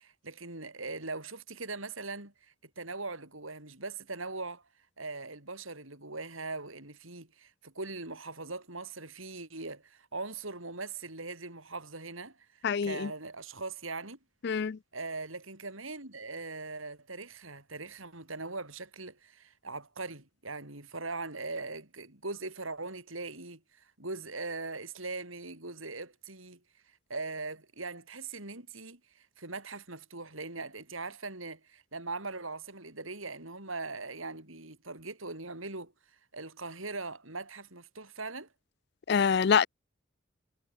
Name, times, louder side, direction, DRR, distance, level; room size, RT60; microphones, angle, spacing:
voice 1, 0.0-4.6 5.0-14.2 14.9-26.6 26.9-35.9 36.3-38.5, right 3 dB, 80° right, 6.9 m, -41 dB
voice 2, 12.6-13.1 14.4-14.8 39.1-39.7, left 6 dB, 55° left, 0.4 m, -25 dB
head